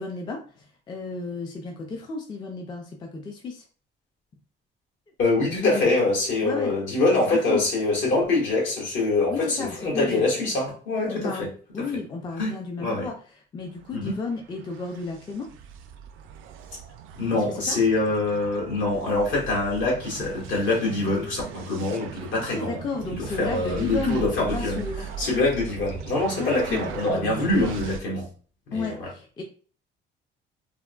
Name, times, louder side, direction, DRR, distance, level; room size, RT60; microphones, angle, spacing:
voice 1, 0.0-3.6 5.4-5.9 6.4-6.7 7.3-7.7 9.3-10.2 11.1-15.5 17.3-17.8 22.5-24.3 24.5-25.1 26.3-27.7 28.7-29.4, left 4 dB, 20° left, 2 dB, 0.3 m, -33 dB
voice 2, 5.2-11.5 12.4-12.5 12.8-13.0 13.9-14.1 17.1-22.8 23.2-24.8 25.2-28.3 28.7-29.1, left 2 dB, 70° left, -3 dB, 1.5 m, -24 dB
sound 1, 13.6-28.0, right 8 dB, 80° right, 0.4 m, -39 dB
3.4 x 2.1 x 2.3 m, 0.41 s
cardioid pair, 160°, 20 cm